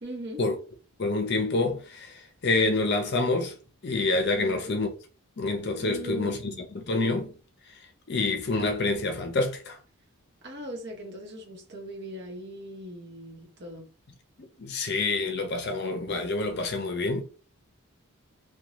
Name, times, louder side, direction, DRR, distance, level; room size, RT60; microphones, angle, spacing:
voice 1, 0.0-0.4 4.3-4.7 5.8-6.6 10.4-13.8, right 1 dB, 50° right, 0.9 m, -39 dB
voice 2, 1.0-3.5 3.8-4.9 5.4-7.3 8.1-9.8 14.4-17.2, left 3 dB, 50° left, 0.5 m, -27 dB
2.6 x 2.2 x 2.9 m
head